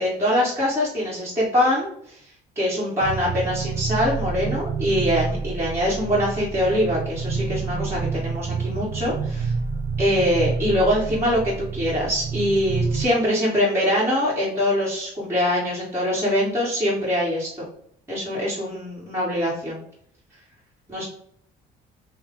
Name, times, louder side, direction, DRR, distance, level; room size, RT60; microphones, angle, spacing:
voice 1, 0.0-2.2 2.5-9.5 10.0-17.5 18.1-19.8 20.9-21.1, equal, 15° right, -7 dB, 1.7 m, -23 dB
sound 1, 3.0-13.1, right 5 dB, 35° right, 0.5 m, -28 dB
6.1 x 2.4 x 3.7 m, 0.67 s
cardioid pair, 110°, 17 cm